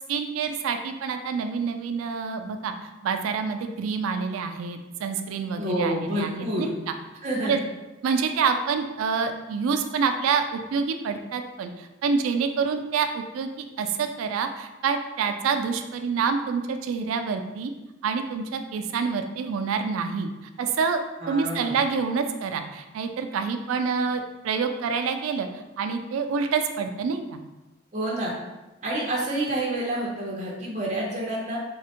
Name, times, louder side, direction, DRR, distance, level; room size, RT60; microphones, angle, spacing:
voice 1, 0.1-6.9 7.4-7.6 8.0-17.7 18.0-20.3 20.6-21.0 21.3-25.5 25.8-27.4, right 5 dB, 90° right, 7 dB, 0.3 m, -27 dB
voice 2, 5.6-6.7 7.2-7.6 21.2-21.8 27.9-28.3 28.8-31.6, right 1 dB, 35° right, -4 dB, 0.5 m, -28 dB
3.4 x 2.1 x 2.8 m, 1.0 s
head